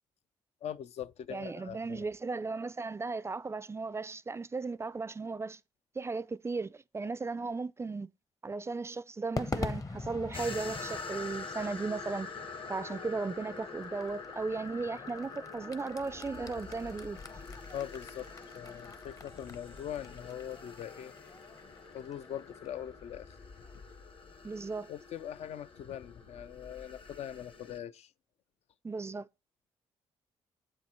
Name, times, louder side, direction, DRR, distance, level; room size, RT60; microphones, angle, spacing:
voice 1, 0.6-2.1 17.7-21.1 21.9-23.4 24.9-28.1, left 10 dB, 65° left, 0.4 m, -42 dB
voice 2, 1.3-5.6 6.0-8.1 8.4-12.3 12.7-17.2 24.4-24.9 28.8-29.3, right 4 dB, 25° right, 0.3 m, -36 dB
Crowd / Fireworks, 9.4-23.8, left 3 dB, 30° left, 0.7 m, -45 dB
sound 1, 10.3-27.8, left 4 dB, 50° left, 1.1 m, -46 dB
7.7 x 4.4 x 4.2 m
supercardioid pair, 60°, 12 cm